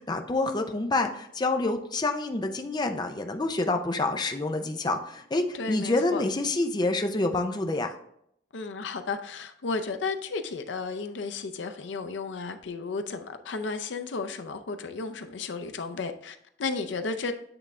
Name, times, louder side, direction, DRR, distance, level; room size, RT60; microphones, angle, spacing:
voice 1, 0.0-8.0, left 2 dB, 25° left, 0.5 m, -27 dB
voice 2, 5.5-6.2 8.5-17.3, left 4 dB, 85° left, 0.5 m, -33 dB
8.7 x 3.4 x 3.6 m
head